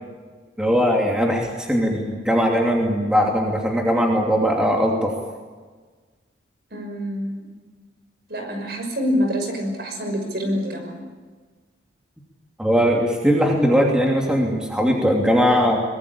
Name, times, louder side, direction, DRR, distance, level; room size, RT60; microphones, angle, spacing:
voice 1, 0.6-5.1 12.6-15.8, equal, 5° right, 0 dB, 2.8 m, -20 dB
voice 2, 6.7-7.5 8.3-11.0, equal, 55° right, 4 dB, 6.0 m, -26 dB
23.0 x 21.5 x 8.7 m, 1.4 s
head